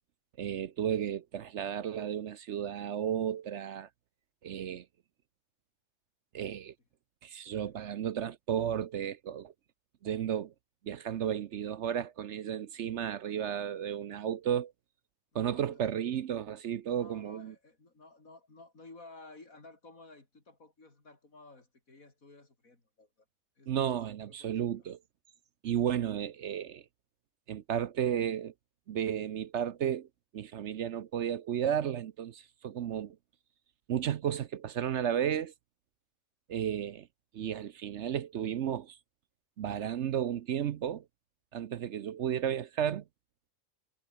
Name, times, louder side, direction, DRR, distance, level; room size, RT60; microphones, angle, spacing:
voice 1, 0.4-3.9 4.4-4.8 6.3-6.7 7.2-9.5 10.0-10.5 10.8-14.7 15.3-17.5 23.7-25.0 25.6-26.8 27.5-28.5 28.9-30.1 30.3-33.2 33.9-35.5 36.5-37.1 37.3-39.0 39.6-41.0 41.5-43.0, right 9 dB, 60° right, 0.9 m, -33 dB
voice 2, 7.5-8.0 15.3-16.0 16.9-23.1 23.6-24.8 25.9-26.2, left 3 dB, 75° left, 4.7 m, -55 dB
omnidirectional pair, 1.5 m